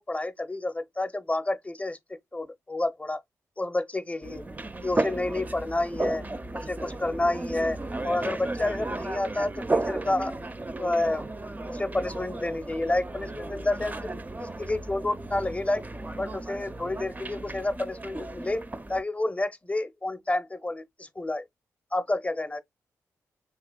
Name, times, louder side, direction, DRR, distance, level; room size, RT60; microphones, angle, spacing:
voice 1, 0.0-3.2 3.6-4.4 4.8-6.2 6.5-7.8 8.0-10.4 10.8-14.1 14.4-15.8 16.2-21.4 21.9-22.6, left 2 dB, 20° left, 0.6 m, -29 dB
sound 1, 4.2-19.0, right 2 dB, 20° right, 0.4 m, -34 dB
3.2 x 2.8 x 2.2 m
supercardioid pair, 45°, 7 cm